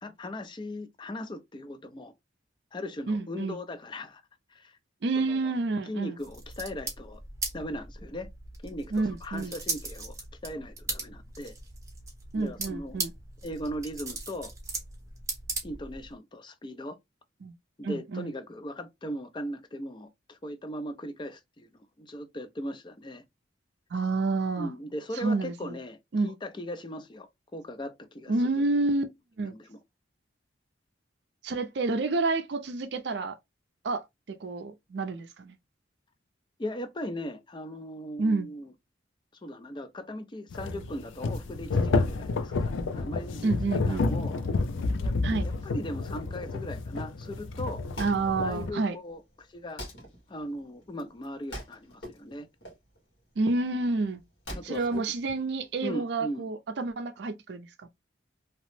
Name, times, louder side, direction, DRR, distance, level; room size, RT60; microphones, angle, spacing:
voice 1, 0.0-2.1 2.7-4.2 4.5-4.8 5.2-5.5 5.9-7.2 7.5-8.3 8.6-10.1 10.4-11.5 12.4-13.0 13.4-14.5 15.6-17.0 17.8-21.7 22.0-23.2 24.6-26.0 26.2-28.3 29.5-29.8 36.6-38.7 39.4-44.5 45.0-45.1 45.4-47.8 48.4-49.8 50.3-52.5 54.5-55.0 55.8-56.5, equal, 25° left, 0.4 m, -38 dB
voice 2, 3.1-3.6 5.0-6.2 8.9-9.5 12.3-13.1 17.4-17.5 17.8-18.3 23.9-24.7 25.1-25.8 26.1-26.3 28.3-29.1 29.4-29.6 31.4-33.4 33.8-35.6 38.2-38.5 43.4-44.1 45.2-45.5 48.0-49.0 53.4-54.2 54.6-57.9, right 3 dB, 65° right, 0.4 m, -29 dB
sound 1, 6.2-16.1, right 3 dB, 15° right, 0.8 m, -38 dB
sound 2, 40.5-48.7, left 3 dB, 90° left, 0.4 m, -30 dB
Wood, 47.8-55.9, equal, 70° left, 1.3 m, -45 dB
2.9 x 2.0 x 3.1 m
head